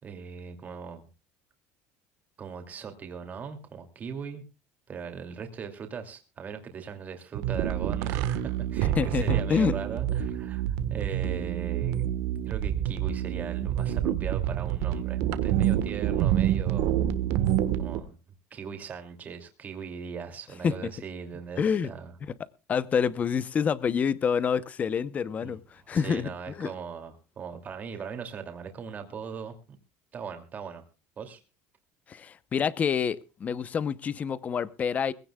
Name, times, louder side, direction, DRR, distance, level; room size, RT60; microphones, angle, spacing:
voice 1, 0.0-1.1 2.4-4.4 4.9-10.6 10.9-12.1 12.5-17.0 17.8-18.1 18.5-22.1 25.4-25.6 25.9-29.8 30.1-30.8 31.2-31.4, right 6 dB, 30° right, 2.6 m, -39 dB
sound 1, 7.3-18.0, right 11 dB, 70° right, 1.3 m, -27 dB
voice 2, 9.0-9.7 20.6-20.9 21.6-21.9 22.7-26.7 32.1-35.1, left 7 dB, 25° left, 0.8 m, -27 dB
22.0 x 16.0 x 2.3 m
cardioid pair, 145°, 6 cm